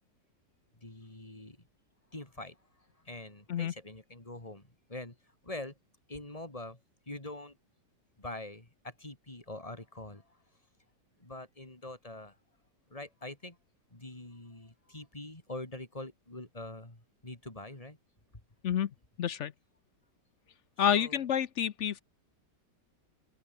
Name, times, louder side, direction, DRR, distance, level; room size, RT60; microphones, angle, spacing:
voice 1, 0.8-1.7 2.1-5.2 5.4-5.8 6.1-6.8 7.1-7.6 8.2-10.4 11.2-12.4 12.9-13.6 13.9-18.0 20.8-21.2, left 2 dB, 20° left, 3.9 m, -44 dB
voice 2, 19.2-19.5 20.8-22.0, left 9 dB, 60° left, 0.8 m, -29 dB
open air
omnidirectional pair, 1.9 m